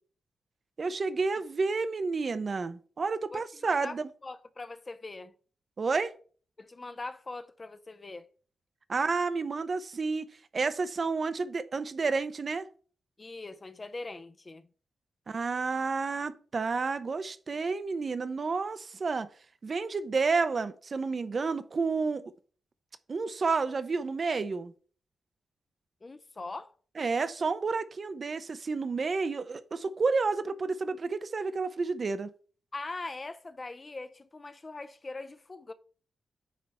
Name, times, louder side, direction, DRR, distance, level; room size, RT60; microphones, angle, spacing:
voice 1, 0.8-4.1 5.8-6.1 8.9-10.3 10.5-12.7 15.3-19.3 19.6-22.3 23.1-24.7 27.0-32.3, right 4 dB, 35° right, 0.6 m, -30 dB
voice 2, 3.3-4.0 4.2-5.3 6.6-8.3 13.2-14.7 26.0-26.7 32.7-35.7, left 3 dB, 25° left, 0.4 m, -41 dB
9.3 x 3.4 x 5.5 m
wide cardioid pair, 165°, 0 cm